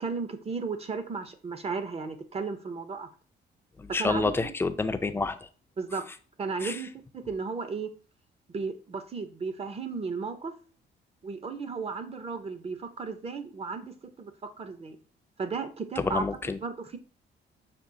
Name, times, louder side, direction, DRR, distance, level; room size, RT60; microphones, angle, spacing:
voice 1, 0.0-3.1 4.0-4.3 5.8-6.1 6.4-7.9 8.5-10.5 11.2-15.0 15.4-16.2 16.6-17.0, right 4 dB, 30° right, 9 dB, 0.6 m, -34 dB
voice 2, 3.8-5.5 6.6-6.8 16.0-16.6, left 3 dB, 10° left, 8 dB, 0.4 m, -28 dB
5.9 x 2.4 x 2.6 m, 0.39 s
cardioid pair, 90°, 20 cm